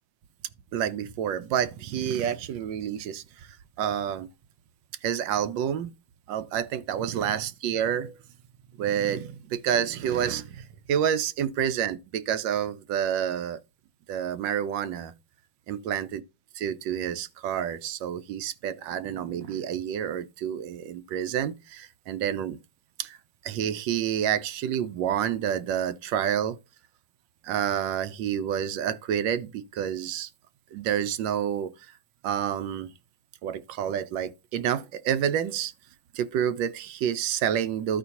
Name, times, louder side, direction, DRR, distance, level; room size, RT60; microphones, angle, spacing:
voice 1, 0.7-3.5 3.8-4.3 5.0-5.9 6.3-8.2 8.8-13.6 14.1-15.1 15.7-16.2 16.5-22.6 23.0-23.2 23.4-26.6 27.4-30.3 30.7-31.7 32.2-32.9 33.4-35.7 36.1-38.0, right 9 dB, 75° right, 1.2 m, -28 dB
13.5 x 5.0 x 2.8 m
omnidirectional pair, 2.3 m